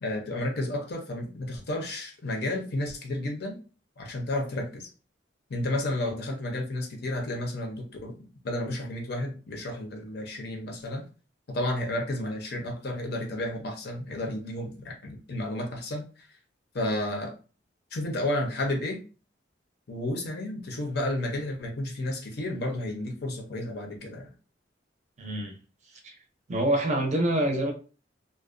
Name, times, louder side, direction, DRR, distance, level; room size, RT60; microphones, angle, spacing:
voice 1, 0.0-3.6 4.0-4.9 5.5-8.1 8.4-11.0 11.5-16.0 16.7-17.3 17.9-19.0 19.9-24.3, left 1 dB, 60° left, 0.6 m, -32 dB
voice 2, 25.2-25.6 25.9-26.1 26.5-27.7, right 1 dB, 40° right, 0.5 m, -26 dB
2.4 x 2.1 x 2.4 m
head